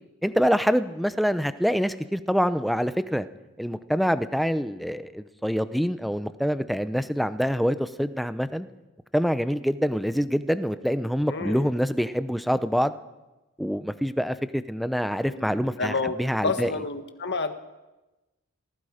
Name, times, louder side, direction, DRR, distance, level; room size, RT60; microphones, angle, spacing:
voice 1, 0.2-3.3 3.6-8.7 9.1-12.9 13.6-16.7, equal, ahead, 12 dB, 0.7 m, -25 dB
voice 2, 11.3-11.6 15.3-15.5 15.8-16.2 16.4-17.5, left 3 dB, 50° left, 7 dB, 1.7 m, -29 dB
27.5 x 19.5 x 5.1 m, 1.1 s
head